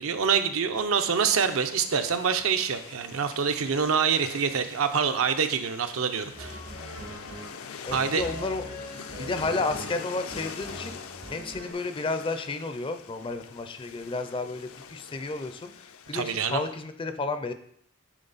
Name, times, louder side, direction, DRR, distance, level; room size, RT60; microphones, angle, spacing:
voice 1, 0.0-6.6 7.9-8.3 16.1-16.6, right 6 dB, 70° right, 8 dB, 0.6 m, -26 dB
sound 1, 1.4-16.7, left 6 dB, 75° left, 0.5 m, -44 dB
sound 2, 6.3-11.7, equal, 85° right, 2.8 m, -42 dB
voice 2, 7.8-8.6 9.2-11.0 11.3-15.7 16.1-17.5, left 3 dB, 25° left, 9 dB, 0.4 m, -32 dB
9.0 x 4.2 x 4.0 m, 0.67 s
head